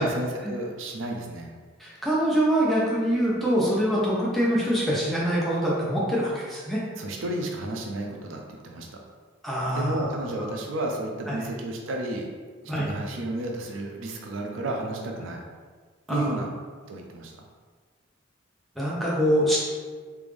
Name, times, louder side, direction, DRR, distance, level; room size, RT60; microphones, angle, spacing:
voice 1, 0.0-1.5 6.9-8.9 9.7-12.3 12.7-15.5 16.1-16.5 16.9-17.3, right 1 dB, 65° right, 1 dB, 0.4 m, -32 dB
voice 2, 1.8-6.8 9.4-10.3 11.3-11.4 12.7-12.9 16.1-16.3 18.8-19.6, equal, ahead, -7 dB, 0.7 m, -24 dB
3.3 x 2.6 x 3.4 m, 1.5 s
head